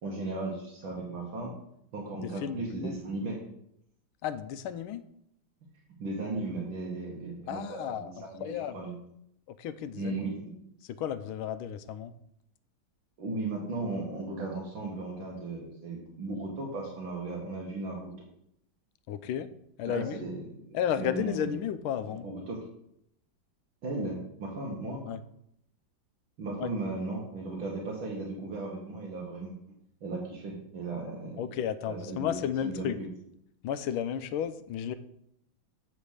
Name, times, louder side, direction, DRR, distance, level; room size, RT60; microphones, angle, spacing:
voice 1, 0.0-1.5 1.9-3.4 6.0-8.9 9.9-10.6 13.2-18.1 19.9-20.4 20.7-21.6 22.2-22.6 23.8-25.0 26.4-29.5 30.0-31.6 31.9-33.1, right 2 dB, 75° right, -3 dB, 2.2 m, -36 dB
voice 2, 2.2-2.9 4.2-5.0 7.5-8.1 8.4-8.8 9.5-10.2 10.8-12.1 19.1-19.5 19.8-20.2 20.7-22.3 25.1-25.2 26.6-26.7 31.4-33.0 33.6-35.0, left 9 dB, 85° left, 13 dB, 1.4 m, -33 dB
7.2 x 5.0 x 6.5 m, 0.75 s
omnidirectional pair, 2.2 m